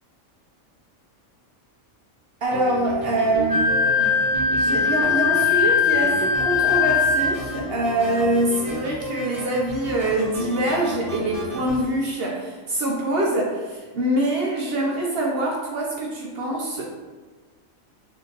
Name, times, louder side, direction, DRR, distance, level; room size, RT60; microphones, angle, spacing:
voice 1, 2.4-4.2 4.5-16.9, right 1 dB, 60° right, -2 dB, 0.7 m, -24 dB
sound 1, 2.5-11.8, equal, 30° right, 0.9 m, -32 dB
Wind instrument woodwind instrument, 3.5-7.4, left 5 dB, 85° right, 1.5 m, -20 dB
3.4 x 2.7 x 3.9 m, 1.4 s
omnidirectional pair, 1.4 m